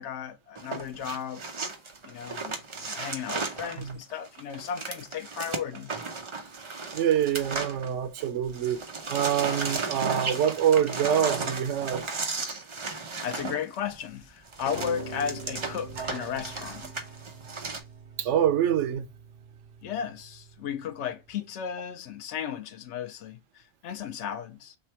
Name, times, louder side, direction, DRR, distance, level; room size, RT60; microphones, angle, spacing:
voice 1, 0.0-1.4 2.0-5.9 13.2-16.9 19.8-24.8, left 8 dB, 80° left, 0.9 m, -35 dB
sound 1, 0.5-8.3 8.5-17.8, right 4 dB, 35° right, 0.6 m, -35 dB
voice 2, 6.9-8.8 9.1-12.1 18.2-19.1, right 9 dB, 85° right, 0.9 m, -25 dB
Piano, 14.7-20.9, right 4 dB, 55° right, 1.7 m, -44 dB
3.4 x 3.3 x 4.3 m
omnidirectional pair, 1.2 m